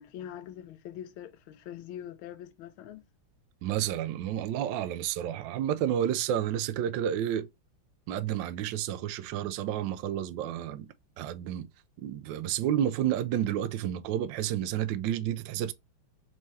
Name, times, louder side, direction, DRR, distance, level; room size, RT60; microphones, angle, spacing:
voice 1, 0.0-3.0, left 10 dB, 85° left, 1.4 m, -43 dB
voice 2, 3.6-7.5 8.1-10.9 11.2-11.7 12.0-15.7, right 10 dB, 75° right, 1.2 m, -30 dB
4.6 x 3.2 x 2.7 m
omnidirectional pair, 2.2 m